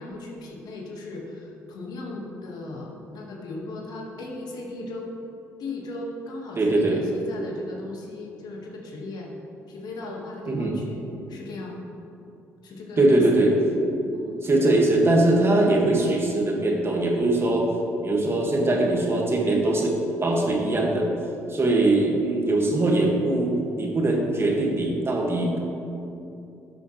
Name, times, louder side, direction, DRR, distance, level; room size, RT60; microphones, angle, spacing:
voice 1, 0.0-5.1 5.6-9.3 9.7-11.8 12.6-13.2 14.1-14.4 18.3-18.5, left 2 dB, 65° left, -1 dB, 1.8 m, -37 dB
voice 2, 6.6-7.0 10.5-10.7 13.0-13.5 14.4-17.6 18.0-20.0 20.2-21.1 21.5-25.6, right 2 dB, 35° right, -1 dB, 2.0 m, -21 dB
12.5 x 7.9 x 3.3 m, 2.8 s
hypercardioid pair, 50°, 8 cm